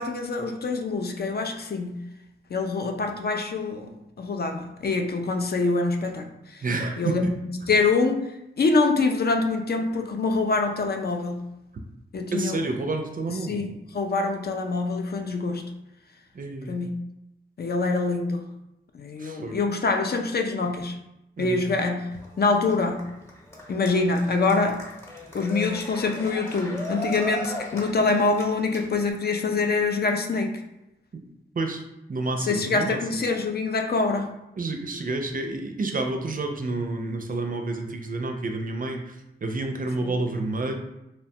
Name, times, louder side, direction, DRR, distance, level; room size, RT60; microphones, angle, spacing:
voice 1, 0.0-2.0 2.5-3.9 4.2-6.6 7.0-7.3 7.7-8.2 8.6-11.4 12.1-12.7 13.3-15.7 16.7-17.0 17.6-18.4 18.9-20.9 21.4-22.1 22.4-23.0 23.7-24.8 25.3-30.6 32.4-34.3 40.0-40.1, left 3 dB, 50° left, 4 dB, 0.4 m, -25 dB
voice 2, 6.6-7.4 12.3-13.6 16.3-16.8 19.2-19.6 21.4-21.6 31.6-31.8 32.1-33.0 34.6-39.2 39.4-40.7, right 2 dB, 40° right, 4 dB, 0.4 m, -29 dB
Cheering, 22.1-29.1, equal, 10° left, 0.9 m, -37 dB
3.0 x 2.1 x 2.7 m, 0.89 s
cardioid pair, 50°, 21 cm